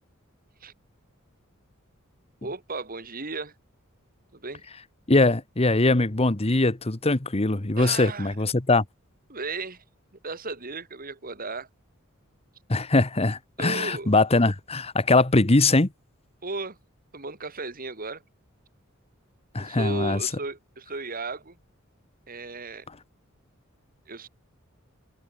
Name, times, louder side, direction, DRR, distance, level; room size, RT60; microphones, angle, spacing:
voice 1, 2.4-3.5 4.3-4.6 7.8-8.4 9.3-9.8 10.2-11.7 13.6-14.1 16.4-16.8 17.1-18.2 19.6-21.6 22.3-22.9 24.1-24.3, right 3 dB, 45° right, 3.6 m, -35 dB
voice 2, 5.1-8.8 12.7-15.9 19.5-20.2, left 2 dB, 30° left, 1.2 m, -22 dB
head